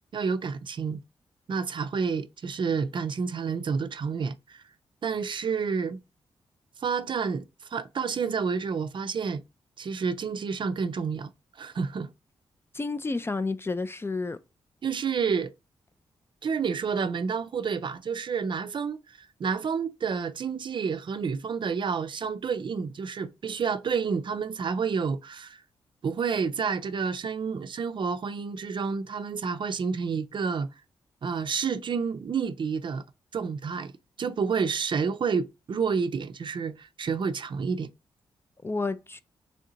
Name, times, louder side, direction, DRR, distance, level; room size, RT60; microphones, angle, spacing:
voice 1, 0.1-1.0 1.5-4.6 5.0-6.0 6.8-9.4 9.8-11.3 11.6-12.1 14.8-15.5 16.4-25.6 26.0-30.7 31.2-33.0 33.3-33.9 34.2-37.9, right 5 dB, 50° right, 0.4 m, -29 dB
voice 2, 12.7-14.4 38.6-39.2, left 3 dB, 25° left, 0.4 m, -30 dB
3.4 x 2.7 x 3.8 m
cardioid pair, 60°, 10 cm